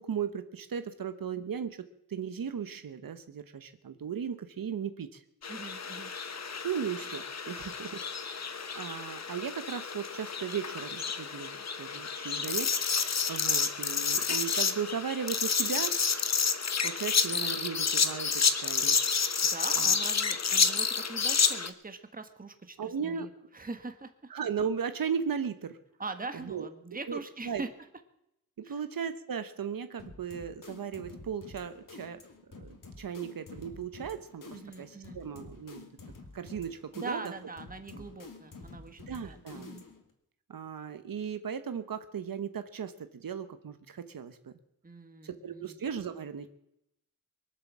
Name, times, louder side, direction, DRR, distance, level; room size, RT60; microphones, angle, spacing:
voice 1, 0.0-5.2 6.6-16.0 16.8-19.0 19.8-20.0 22.8-23.3 24.3-25.8 26.4-26.7 27.1-27.6 28.6-32.2 32.6-35.9 36.3-37.3 37.9-38.0 39.1-39.7 40.5-44.5 45.2-46.5, right 7 dB, 70° right, 10 dB, 1.1 m, -37 dB
sound 1, 5.4-21.7, left 6 dB, 45° left, 1.1 m, -30 dB
voice 2, 5.5-6.1 19.4-24.3 26.0-27.7 28.6-28.8 34.5-35.2 36.9-39.8 44.8-45.8, right 3 dB, 25° right, 7 dB, 1.5 m, -42 dB
sound 2, 30.0-40.1, left 3 dB, 65° left, 2.7 m, -49 dB
23.5 x 8.0 x 7.4 m, 0.80 s
wide cardioid pair, 135°, 36 cm